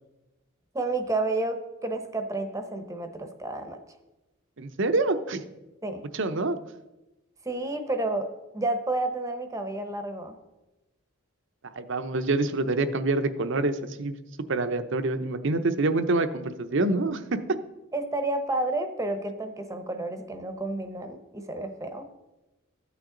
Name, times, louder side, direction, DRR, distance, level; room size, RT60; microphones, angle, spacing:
voice 1, 0.7-3.8 5.8-6.0 7.4-8.3 8.5-10.4 17.9-22.1, right 2 dB, 15° right, 6 dB, 0.8 m, -30 dB
voice 2, 4.6-5.4 6.1-6.6 11.8-14.1 14.5-17.4, right 2 dB, 60° right, 10 dB, 0.7 m, -26 dB
13.5 x 9.1 x 3.8 m, 1.0 s
head